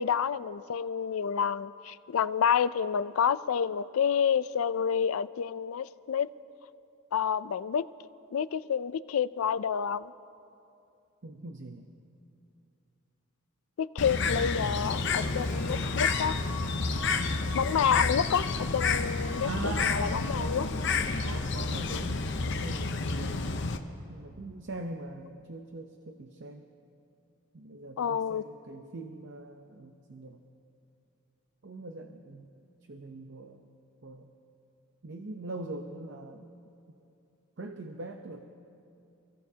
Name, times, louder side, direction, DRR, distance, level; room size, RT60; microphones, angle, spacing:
voice 1, 0.0-6.3 7.1-7.9 8.3-10.1 13.8-16.4 17.5-20.7 28.0-28.4, left 7 dB, 85° left, 16 dB, 0.4 m, -29 dB
voice 2, 11.2-11.9 17.9-18.1 19.4-23.4 24.1-26.6 27.5-30.4 31.6-33.7 34.0-34.3 35.0-36.4 37.6-38.4, right 2 dB, 55° right, 4 dB, 0.7 m, -42 dB
Bird, 14.0-23.8, left 4 dB, 55° left, 0.8 m, -30 dB
Harp, 14.3-19.2, right 1 dB, 10° left, 1.1 m, -51 dB
28.0 x 16.0 x 2.8 m, 2.7 s
head